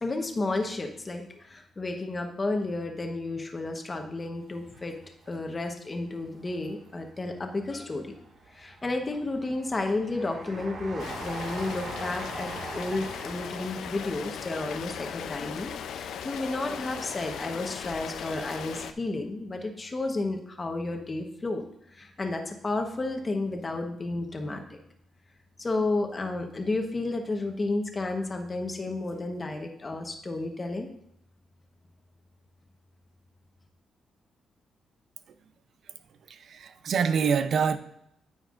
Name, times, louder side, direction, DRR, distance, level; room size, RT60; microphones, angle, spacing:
voice 1, 0.0-4.9 5.3-8.1 8.5-21.6 21.9-24.8 25.6-30.9, left 2 dB, 25° left, 1.1 m, -32 dB
Train, 4.5-5.7 6.2-7.1 7.7-16.4 16.7-16.8, right 3 dB, 75° right, 1.9 m, -43 dB
Rain, 11.0-18.9, left 8 dB, 80° left, 0.5 m, -38 dB
voice 2, 36.3-37.8, right 6 dB, 60° right, 0.6 m, -26 dB
9.3 x 9.0 x 2.5 m
cardioid pair, 135°, 0 cm